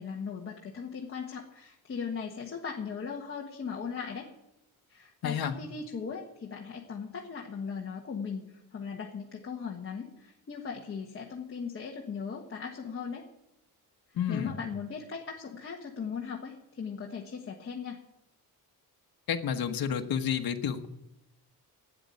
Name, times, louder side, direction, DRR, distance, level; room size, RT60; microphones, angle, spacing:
voice 1, 0.0-4.3 4.9-8.4 8.7-13.2 14.3-18.0, left 6 dB, 35° left, -2 dB, 1.4 m, -38 dB
voice 2, 5.2-5.5 14.1-14.5 19.3-20.9, left 8 dB, 60° left, 6 dB, 1.4 m, -30 dB
12.5 x 9.3 x 9.6 m, 0.87 s
wide cardioid pair, 180°, 39 cm